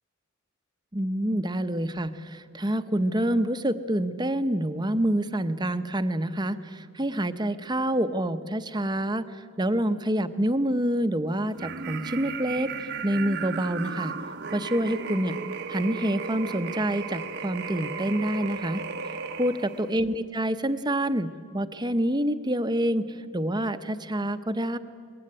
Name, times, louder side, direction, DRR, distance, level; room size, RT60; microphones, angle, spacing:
voice 1, 0.9-14.1 14.5-15.4 15.7-18.8 19.4-24.8, right 1 dB, 20° right, 10 dB, 0.9 m, -27 dB
sound 1, 11.6-19.9, right 5 dB, 55° right, 0.9 m, -35 dB
23.5 x 20.5 x 10.0 m, 2.1 s
head